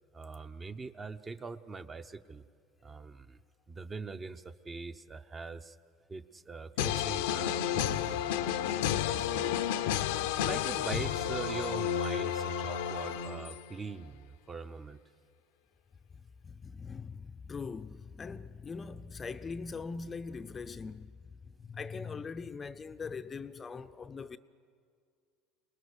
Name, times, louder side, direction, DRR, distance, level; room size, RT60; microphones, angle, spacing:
voice 1, 0.1-2.4 2.8-3.4 3.7-5.8 6.1-8.2 9.1-9.6 10.4-15.0, right 4 dB, 25° right, 0.8 m, -42 dB
sound 1, 6.8-13.7, left 10 dB, 85° left, 0.7 m, -31 dB
voice 2, 8.7-9.0 16.1-21.1 21.4-24.4, left 5 dB, 25° left, 0.6 m, -42 dB
26.0 x 19.5 x 6.5 m
supercardioid pair, 105°, 0 cm